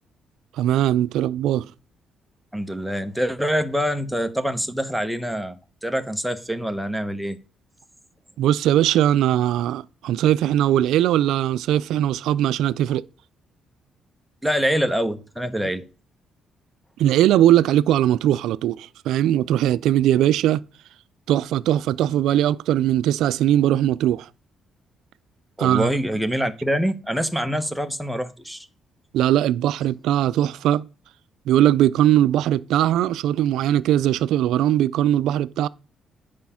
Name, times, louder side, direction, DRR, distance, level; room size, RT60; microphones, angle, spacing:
voice 1, 0.6-1.7 8.4-13.0 17.0-20.6 21.3-24.3 25.6-25.9 29.1-30.9 31.5-35.7, right 12 dB, 85° right, 0.3 m, -20 dB
voice 2, 2.5-7.4 14.4-15.8 25.6-28.7, equal, ahead, 0.9 m, -25 dB
9.5 x 5.0 x 5.7 m
cardioid pair, 90°, 0 cm